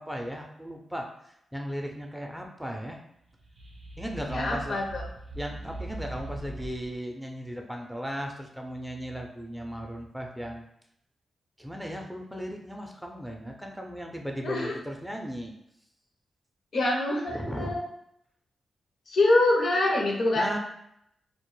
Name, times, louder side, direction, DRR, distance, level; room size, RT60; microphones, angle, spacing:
voice 1, 0.0-3.0 4.0-4.8 5.3-10.7 11.6-15.5 17.3-17.8 20.3-20.6, equal, 5° right, 1 dB, 0.5 m, -36 dB
sound 1, 3.3-7.0, right 1 dB, 70° right, 0.5 m, -40 dB
voice 2, 4.3-5.0 14.4-14.7 16.7-17.8 19.1-20.5, left 2 dB, 70° left, 0 dB, 0.6 m, -25 dB
2.1 x 2.0 x 3.1 m, 0.76 s
supercardioid pair, 45°, 0 cm